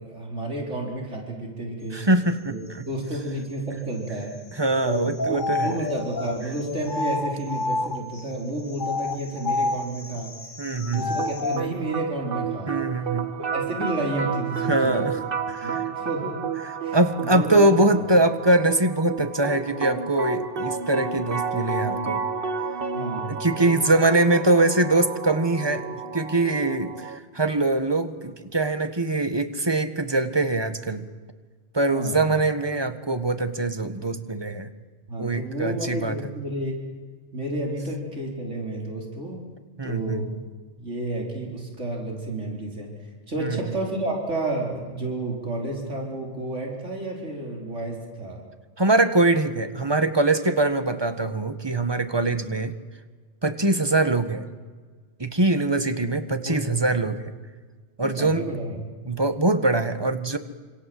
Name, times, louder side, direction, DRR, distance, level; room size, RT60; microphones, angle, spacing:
voice 1, 0.0-2.0 2.4-2.6 2.8-4.3 4.8-10.3 10.7-12.8 13.3-15.1 15.6-16.4 16.8-17.8 22.9-23.8 31.9-32.3 35.1-36.8 37.3-39.4 39.8-40.3 40.8-42.9 43.3-48.4 56.4-56.6 58.0-58.8, right 1 dB, 80° right, 0 dB, 4.8 m, -31 dB
voice 2, 1.9-2.8 4.6-5.8 10.6-11.2 12.7-13.3 14.7-15.2 15.5-15.8 16.9-22.2 23.3-25.8 26.1-31.0 31.7-34.7 35.2-36.2 39.8-40.2 43.4-43.6 48.8-52.7 53.4-54.4 55.2-57.2 58.0-58.5 59.1-60.4, right 2 dB, 20° right, 9 dB, 1.7 m, -23 dB
sound 1, 4.8-8.2 8.7-11.7, left 3 dB, 45° left, 1.6 m, -29 dB
sound 2, 11.2-27.2, right 6 dB, 50° right, 1.6 m, -31 dB
27.5 x 26.5 x 7.9 m, 1.4 s
omnidirectional pair, 1.2 m